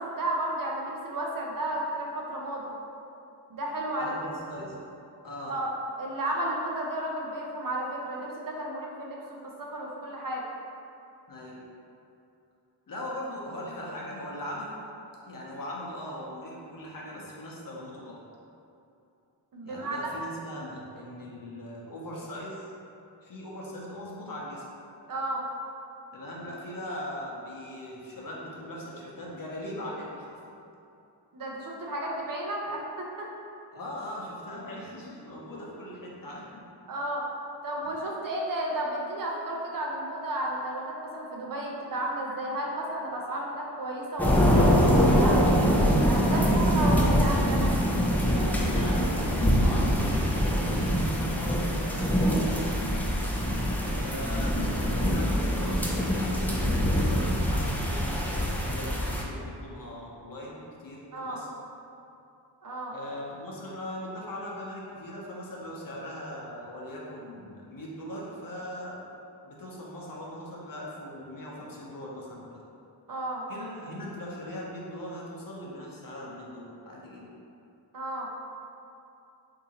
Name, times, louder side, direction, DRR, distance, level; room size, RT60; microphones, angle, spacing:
voice 1, 0.0-2.7 3.5-4.1 5.5-5.7 6.0-10.4 19.5-20.1 25.1-25.5 31.3-33.3 36.9-37.2 37.6-45.6 46.0-46.4 46.7-47.6 54.0-54.2 61.1-61.4 62.6-62.9 73.1-73.5 77.9-78.3, right 1 dB, 50° right, -2 dB, 0.6 m, -33 dB
voice 2, 4.0-4.7 5.2-5.5 11.3-11.6 12.9-14.8 15.3-18.2 19.6-22.6 23.2-24.6 26.1-30.1 30.5-30.6 33.7-36.6 46.2-46.8 48.3-52.7 54.0-61.5 62.8-69.0 69.4-72.6 73.5-77.3, left 1 dB, 50° left, -4 dB, 0.7 m, -40 dB
sound 1, 44.2-59.2, equal, 5° left, 0.3 m, -24 dB
3.6 x 2.7 x 2.8 m, 2.7 s
wide cardioid pair, 80°, 45 cm